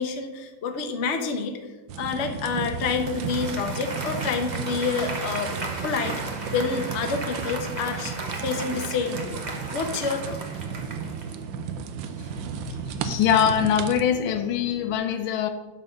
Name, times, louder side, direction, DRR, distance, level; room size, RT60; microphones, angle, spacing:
voice 1, 0.0-1.6 2.0-5.5 5.8-9.4 9.7-10.4, left 5 dB, 45° left, 1.0 m, -28 dB
sound 1, 1.9-14.0, right 7 dB, 75° right, 1.4 m, -34 dB
Applause, 2.5-11.4, right 2 dB, 30° right, 1.0 m, -36 dB
sound 2, 8.9-14.9, right 1 dB, 50° right, 2.2 m, -43 dB
voice 2, 13.0-15.5, left 9 dB, 85° left, 1.6 m, -23 dB
12.0 x 4.3 x 6.4 m
omnidirectional pair, 2.1 m